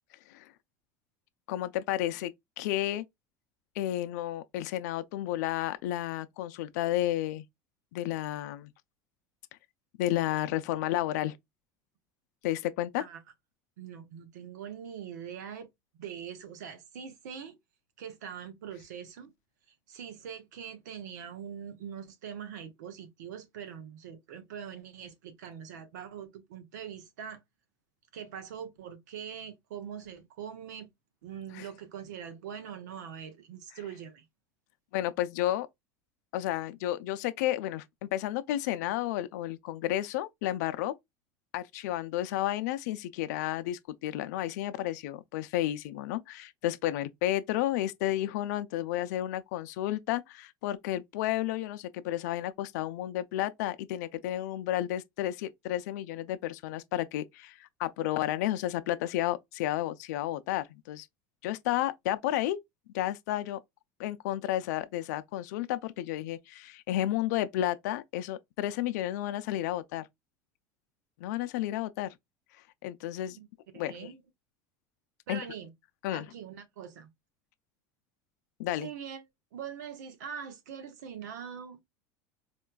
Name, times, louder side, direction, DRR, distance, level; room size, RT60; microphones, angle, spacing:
voice 1, 1.5-3.0 3.8-7.4 7.9-8.7 10.0-11.4 12.4-13.0 31.5-31.7 34.9-35.7 36.3-41.0 41.5-61.1 61.4-62.6 62.9-63.6 64.0-70.1 71.2-72.1 72.8-73.4 73.7-74.1 75.3-75.4 76.0-76.3 78.6-78.9, left 14 dB, 80° left, 0.4 m, -32 dB
voice 2, 13.8-15.7 15.9-17.6 18.0-19.3 19.7-27.4 28.1-30.9 31.2-34.3 73.4-73.5 73.7-74.2 75.3-75.7 76.1-77.1 78.8-79.2 79.5-81.8, right 8 dB, 90° right, 0.8 m, -43 dB
4.3 x 2.2 x 2.3 m
supercardioid pair, 115°, 9 cm